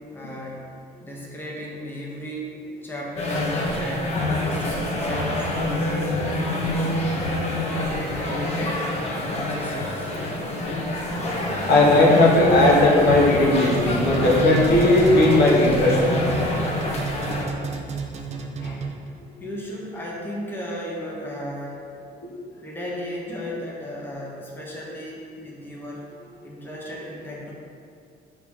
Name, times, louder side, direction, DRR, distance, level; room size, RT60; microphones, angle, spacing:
voice 1, 0.1-0.6 1.0-2.5 2.8-4.1 4.4-6.3 6.7-7.4 7.7-10.2 19.4-21.8 22.6-26.1 26.4-27.5, equal, 10° left, -4 dB, 1.1 m, -35 dB
sound 1, 3.2-17.4, left 1 dB, 40° left, 1.2 m, -26 dB
voice 2, 11.6-16.0 18.6-18.7, left 2 dB, 70° left, -4 dB, 1.3 m, -17 dB
sound 2, 13.6-19.2, right 5 dB, 40° right, 0.6 m, -31 dB
5.6 x 3.7 x 4.8 m, 2.4 s
cardioid pair, 110°, 17 cm